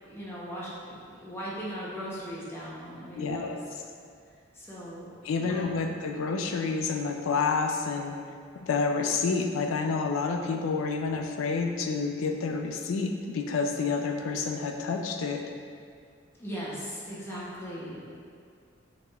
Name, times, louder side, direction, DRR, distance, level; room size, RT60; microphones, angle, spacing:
voice 1, 0.0-3.7 4.5-5.9 16.4-18.2, equal, 10° left, -7 dB, 0.6 m, -39 dB
voice 2, 3.2-3.5 5.2-8.1 8.6-15.4, left 4 dB, 85° left, 4 dB, 0.4 m, -29 dB
4.9 x 3.1 x 2.3 m, 2.2 s
head